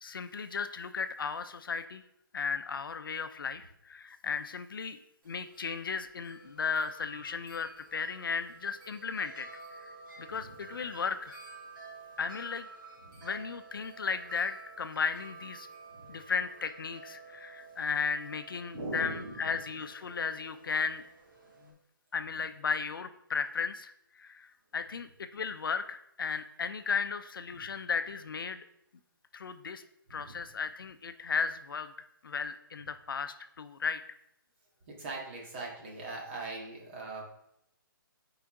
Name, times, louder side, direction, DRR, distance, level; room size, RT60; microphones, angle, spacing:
voice 1, 0.0-2.0 2.3-5.0 5.2-9.9 10.2-11.4 12.2-12.7 13.2-15.7 16.1-21.0 21.6-21.7 22.1-23.9 24.2-28.6 29.3-29.8 30.1-31.9 32.2-34.0, left 5 dB, 75° left, 10 dB, 0.7 m, -35 dB
Wind chime, 5.2-21.7, right 3 dB, 65° right, 2.9 m, -51 dB
voice 2, 18.7-19.4 27.5-27.7 30.1-30.4 34.9-37.2, right 2 dB, 30° right, -2 dB, 2.0 m, -41 dB
11.5 x 5.0 x 3.7 m, 0.79 s
hypercardioid pair, 170°, 12 cm